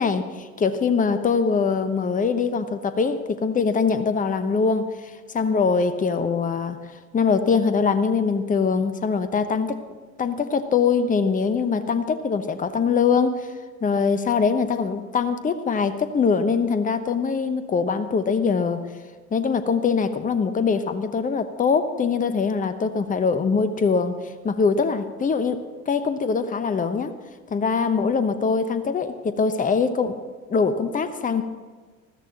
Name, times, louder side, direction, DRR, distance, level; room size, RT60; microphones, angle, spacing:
voice 1, 0.0-4.9 5.3-6.8 7.1-9.8 10.2-13.5 13.8-18.8 19.3-24.1 24.4-27.1 27.5-30.2 30.5-31.4, left 5 dB, 20° left, 11 dB, 1.0 m, -23 dB
20.5 x 14.5 x 3.0 m, 1.4 s
figure-of-eight pair, 70°, 39 cm